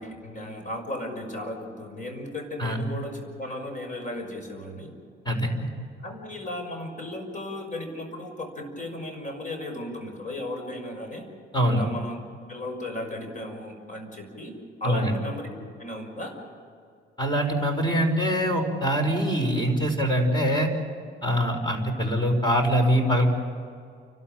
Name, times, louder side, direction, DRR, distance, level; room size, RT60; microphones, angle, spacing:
voice 1, 0.0-4.9 6.0-11.3 11.7-12.2 12.5-14.5 14.8-15.5 15.8-16.3, left 1 dB, 40° left, 4 dB, 6.1 m, -35 dB
voice 2, 5.2-5.7 11.5-11.8 14.8-15.2 17.2-20.7 21.2-23.3, equal, 20° left, 5 dB, 5.1 m, -23 dB
29.5 x 13.0 x 9.0 m, 2.3 s
cardioid pair, 90°, 20 cm